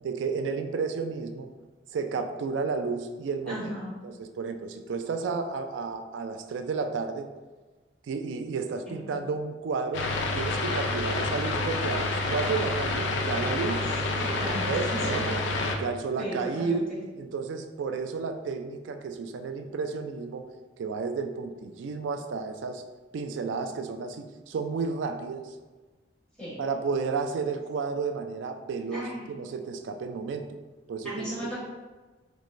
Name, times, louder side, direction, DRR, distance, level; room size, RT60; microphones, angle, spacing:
voice 1, 0.0-1.5 1.9-3.7 4.0-7.3 8.1-10.1 10.3-13.8 14.6-15.4 15.7-16.9 17.1-20.5 20.8-22.8 23.1-25.6 26.6-30.6 30.9-31.5, right 4 dB, 75° right, 7 dB, 0.3 m, -32 dB
voice 2, 3.5-3.9 8.9-9.0 13.7-13.8 14.2-15.2 16.2-17.0 26.4-26.6 28.9-29.3 31.0-31.6, equal, 5° left, -10 dB, 1.3 m, -35 dB
sound 1, 9.9-15.8, left 2 dB, 70° left, 0.4 m, -28 dB
4.6 x 2.1 x 2.5 m, 1.3 s
head